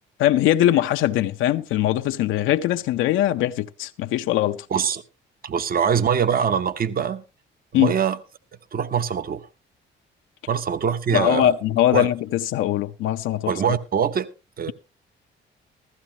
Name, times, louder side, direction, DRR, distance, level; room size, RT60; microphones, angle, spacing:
voice 1, 0.2-4.7 7.7-7.9 11.1-13.7, left 13 dB, 90° left, 0.6 m, -21 dB
voice 2, 4.7-5.0 5.4-7.2 7.7-8.2 8.7-9.5 10.5-11.5 11.9-12.1 13.5-14.3 14.6-14.7, right 7 dB, 50° right, 0.9 m, -23 dB
15.0 x 14.0 x 2.8 m
cardioid pair, 90°, 20 cm